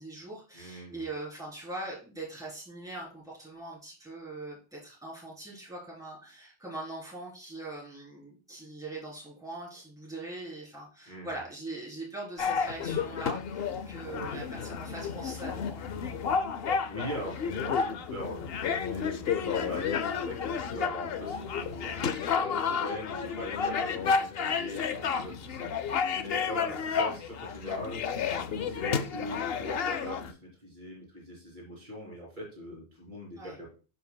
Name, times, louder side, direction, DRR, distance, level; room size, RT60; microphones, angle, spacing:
voice 1, 0.0-15.8 33.4-33.6, right 2 dB, 5° right, -6 dB, 3.6 m, -41 dB
voice 2, 0.5-1.1 11.1-11.3 14.1-14.4 16.8-28.1 28.5-33.7, equal, 45° right, -4 dB, 3.3 m, -42 dB
sound 1, 12.4-30.3, left 6 dB, 65° left, 0.9 m, -31 dB
12.5 x 5.5 x 2.3 m, 0.36 s
omnidirectional pair, 1.1 m